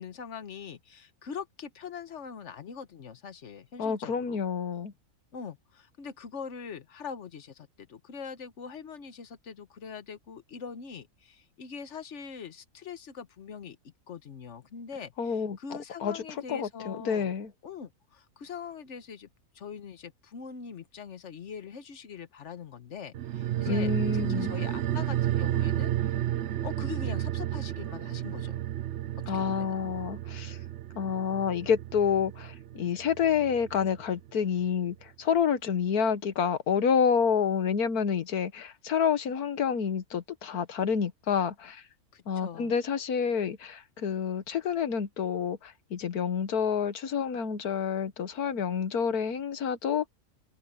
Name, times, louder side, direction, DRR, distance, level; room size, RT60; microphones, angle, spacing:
voice 1, 0.0-4.4 5.3-17.3 17.6-19.3 19.5-25.9 26.6-28.6 29.2-29.7 42.1-42.7, left 6 dB, 55° left, 1.4 m, -42 dB
voice 2, 3.8-4.9 15.2-15.6 16.0-16.2 16.5-17.5 23.7-24.5 29.3-30.6 31.0-41.8 42.3-50.1, left 7 dB, 90° left, 1.7 m, -28 dB
sound 1, 23.1-34.0 34.3-34.4, right 12 dB, 60° right, 0.9 m, -32 dB
omnidirectional pair, 1.6 m